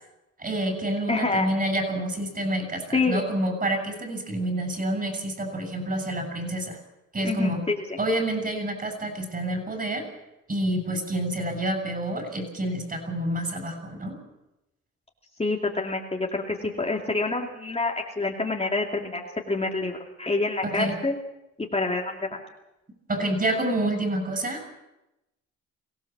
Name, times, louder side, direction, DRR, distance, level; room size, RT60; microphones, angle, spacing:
voice 1, 0.4-6.8 7.1-7.6 8.0-10.0 10.5-14.2 20.6-21.0 23.1-24.8, right 1 dB, 30° right, 6 dB, 7.4 m, -28 dB
voice 2, 1.1-1.5 2.9-3.2 7.2-8.0 15.4-21.2 21.6-22.4, left 3 dB, 20° left, 0 dB, 2.6 m, -27 dB
23.5 x 17.0 x 7.4 m, 0.92 s
cardioid pair, 90°, 30 cm